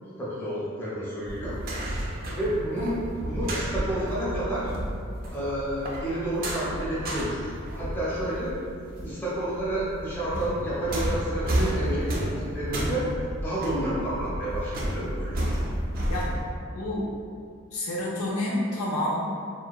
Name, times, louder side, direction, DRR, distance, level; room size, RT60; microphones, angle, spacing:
voice 1, 0.2-1.6 1.9-4.7 5.3-8.5 9.0-13.1 13.4-15.6, right 1 dB, 10° left, -9 dB, 0.5 m, -30 dB
sound 1, 1.3-9.1 9.4-16.4, right 1 dB, 45° right, 0.3 m, -31 dB
voice 2, 16.7-17.1 17.7-19.1, left 1 dB, 85° left, -5 dB, 0.6 m, -29 dB
2.7 x 2.0 x 2.3 m, 2.3 s
head